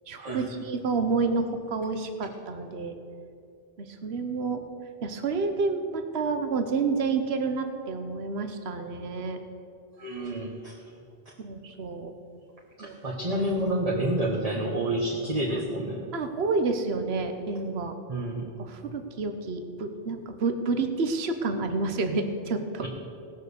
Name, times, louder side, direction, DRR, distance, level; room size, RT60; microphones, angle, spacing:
voice 1, 0.1-3.0 3.8-4.6 5.0-9.4 11.4-12.1 12.8-13.0 14.5-14.7 16.1-17.9 18.6-22.8, right 4 dB, 80° right, 6 dB, 1.2 m, -29 dB
voice 2, 10.0-10.8 12.8-16.1 18.1-18.5, right 1 dB, 35° right, -3 dB, 1.3 m, -29 dB
17.5 x 6.6 x 6.9 m, 2.5 s
omnidirectional pair, 1.0 m